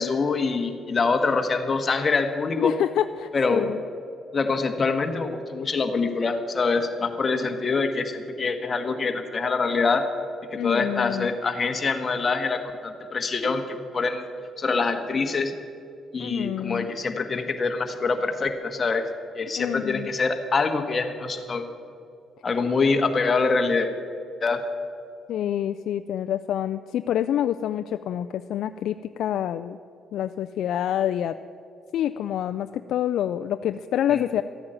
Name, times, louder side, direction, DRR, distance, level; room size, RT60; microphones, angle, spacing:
voice 1, 0.0-2.7 3.3-3.7 4.3-10.1 10.5-14.2 14.6-15.5 16.1-19.0 19.3-21.7 22.4-23.9 24.4-24.6 34.1-34.3, left 4 dB, 35° left, 6 dB, 1.4 m, -25 dB
voice 2, 2.6-3.8 7.3-7.5 10.6-11.4 16.2-16.9 19.6-20.1 25.3-29.8 30.1-31.4 31.9-34.4, left 10 dB, 75° left, 9 dB, 0.3 m, -27 dB
13.5 x 8.8 x 7.7 m, 2.5 s
cardioid pair, 90°, 0 cm